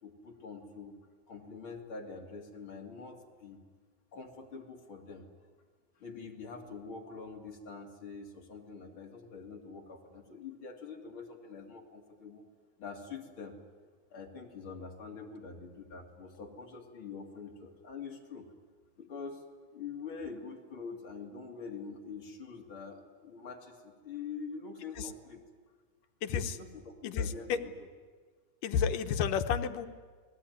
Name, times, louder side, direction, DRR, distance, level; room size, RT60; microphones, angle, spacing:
voice 1, 0.0-1.0 1.3-3.6 4.1-5.3 6.0-12.4 12.8-13.6 14.1-18.5 19.0-19.4 19.7-25.4 26.5-27.6, left 5 dB, 40° left, 1 dB, 3.5 m, -45 dB
voice 2, 26.2-26.6 27.0-27.6 28.6-29.9, left 7 dB, 85° left, 9 dB, 2.6 m, -31 dB
29.5 x 20.5 x 9.5 m, 1.5 s
omnidirectional pair, 3.7 m